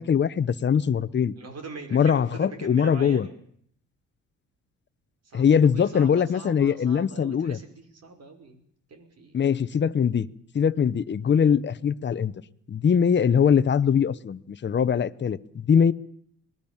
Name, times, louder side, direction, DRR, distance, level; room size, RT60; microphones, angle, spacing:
voice 1, 0.0-1.3 1.9-3.3 5.3-7.6 9.3-10.3 10.5-12.3 12.7-15.9, left 7 dB, 35° left, 1.0 m, -22 dB
voice 2, 1.4-3.4 5.2-8.6 8.9-9.4, right 3 dB, 55° right, 5.5 m, -42 dB
26.0 x 20.0 x 7.3 m
cardioid pair, 90°, 30 cm